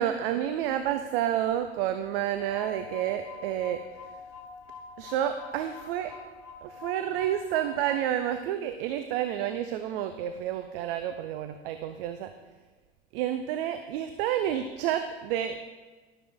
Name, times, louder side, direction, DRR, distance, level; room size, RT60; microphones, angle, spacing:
voice 1, 0.0-3.8 5.0-6.1 6.6-12.3 13.1-15.6, right 11 dB, 60° right, 8 dB, 0.6 m, -30 dB
sound 1, 2.4-8.1, left 5 dB, 40° left, 1.4 m, -45 dB
12.0 x 6.7 x 3.7 m, 1.3 s
figure-of-eight pair, 75°, 33 cm